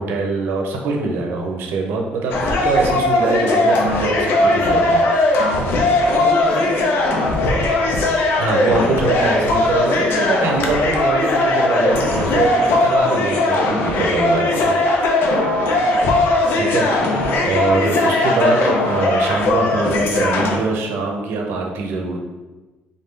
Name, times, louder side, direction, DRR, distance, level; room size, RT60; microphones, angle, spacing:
voice 1, 0.0-5.0 8.4-14.7 16.6-22.2, right 3 dB, 75° right, 2 dB, 0.7 m, -23 dB
sound 1, 2.3-20.6, left 2 dB, 65° left, 0.6 m, -18 dB
voice 2, 6.1-8.0 15.6-16.2, equal, 30° left, -4 dB, 1.1 m, -29 dB
3.8 x 2.6 x 3.7 m, 1.2 s
cardioid pair, 140°, 4 cm